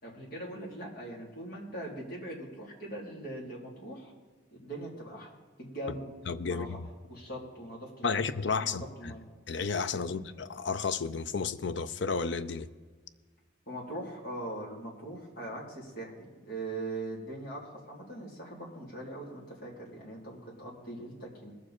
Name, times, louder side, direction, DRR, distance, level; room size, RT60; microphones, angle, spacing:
voice 1, 0.0-4.1 4.6-5.3 5.6-6.1 6.5-6.8 7.1-8.1 8.6-9.3 10.0-10.3 13.7-21.5, right 1 dB, 50° left, 3.5 m, -41 dB
voice 2, 6.3-6.7 8.0-9.1 9.5-12.7, left 5 dB, 65° left, 0.6 m, -32 dB
21.0 x 7.3 x 4.4 m
head